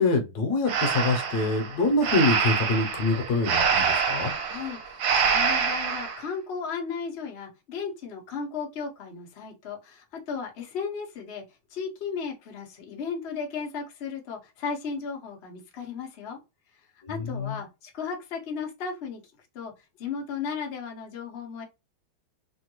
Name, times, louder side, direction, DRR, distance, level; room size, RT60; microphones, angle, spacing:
voice 1, 0.0-4.3 17.0-17.6, left 3 dB, 65° left, 1.1 m, -25 dB
Breathing, 0.7-6.2, right 6 dB, 70° right, 1.4 m, -26 dB
voice 2, 4.4-11.4 11.7-16.4 17.1-19.2 19.5-19.7 20.0-21.6, left 5 dB, 80° left, 0.5 m, -35 dB
3.3 x 2.2 x 2.9 m
omnidirectional pair, 2.3 m